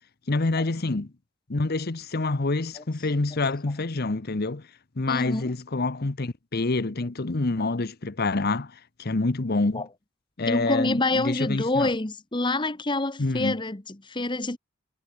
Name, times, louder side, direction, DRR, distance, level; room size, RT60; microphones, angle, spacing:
voice 1, 0.3-1.1 1.5-4.7 5.0-9.9 10.4-11.9 13.2-13.6, left 3 dB, 45° left, 0.9 m, -27 dB
voice 2, 5.1-5.5 9.7-9.9 10.5-14.6, left 2 dB, 20° left, 1.2 m, -27 dB
head